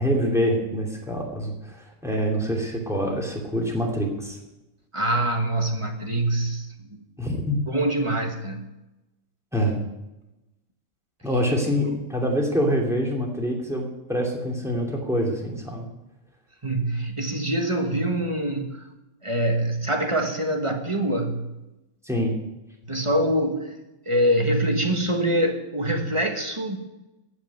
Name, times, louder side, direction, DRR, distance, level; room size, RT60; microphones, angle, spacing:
voice 1, 0.0-4.4 7.2-7.6 9.5-9.8 11.2-15.9 22.0-22.4, equal, ahead, -1 dB, 2.7 m, -25 dB
voice 2, 4.9-6.7 7.7-8.7 11.6-11.7 16.6-18.8 19.2-21.5 22.8-23.8 24.0-26.8, right 1 dB, 20° right, 4 dB, 1.4 m, -24 dB
14.5 x 6.5 x 9.5 m, 0.97 s
omnidirectional pair, 1.5 m